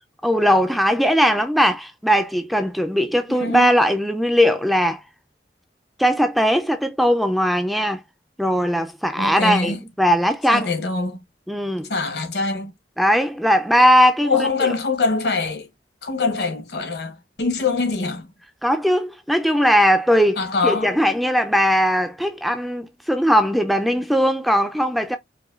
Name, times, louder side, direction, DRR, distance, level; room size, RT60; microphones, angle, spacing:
voice 1, 0.2-5.0 6.0-8.0 8.4-10.7 11.5-11.9 13.0-14.7 18.6-25.2, equal, ahead, 0.3 m, -19 dB
voice 2, 3.3-3.7 9.2-9.8 10.5-11.2 11.9-12.7 14.2-15.7 16.0-18.3 20.4-21.0, left 3 dB, 70° left, 1.0 m, -24 dB
4.8 x 2.2 x 2.4 m
head